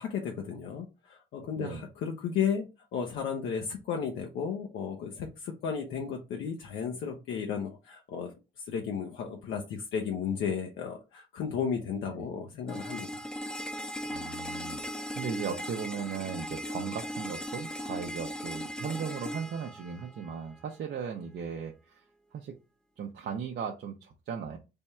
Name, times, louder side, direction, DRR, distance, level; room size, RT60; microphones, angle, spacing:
voice 1, 0.0-13.3, left 7 dB, 80° left, 2 dB, 0.7 m, -34 dB
sound 1, 12.7-20.7, equal, 5° left, 0.5 m, -38 dB
voice 2, 14.0-22.0 22.3-22.5 23.0-24.6, right 6 dB, 55° right, 2 dB, 0.6 m, -37 dB
3.5 x 2.2 x 4.2 m, 0.29 s
cardioid pair, 90°, 20 cm